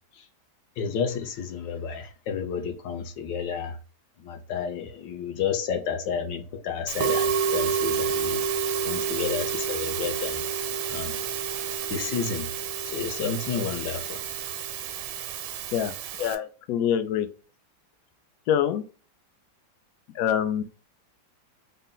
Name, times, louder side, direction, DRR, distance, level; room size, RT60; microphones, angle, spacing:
voice 1, 0.8-3.8 4.2-8.4 8.8-10.5 10.9-11.2 11.9-12.5 12.9-14.2, left 6 dB, 70° left, 1.3 m, -31 dB
Musical instrument, 6.9-16.3, right 7 dB, 90° right, 1.4 m, -29 dB
voice 2, 16.2-17.3 18.5-18.8 20.1-20.6, left 9 dB, 90° left, 0.7 m, -25 dB
3.9 x 2.2 x 3.7 m
omnidirectional pair, 2.1 m